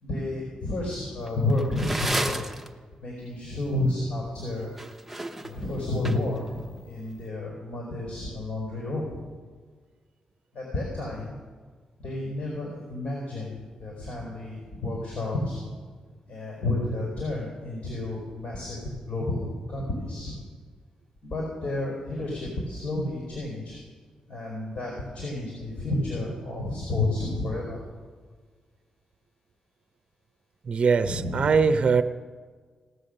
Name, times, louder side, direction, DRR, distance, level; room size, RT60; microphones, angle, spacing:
voice 1, 0.0-2.4 3.0-4.7 5.4-9.1 10.5-11.3 12.0-15.6 16.3-18.8 19.1-20.3 21.3-23.8 24.3-27.8 31.0-31.5, left 2 dB, 65° left, -2 dB, 4.6 m, -31 dB
sound 1, 1.3-2.7 4.6-6.4, right 1 dB, 5° right, 0.9 m, -31 dB
voice 2, 30.7-32.0, right 5 dB, 50° right, 9 dB, 0.6 m, -21 dB
18.0 x 7.0 x 6.6 m, 1.5 s
cardioid pair, 90°, 2 cm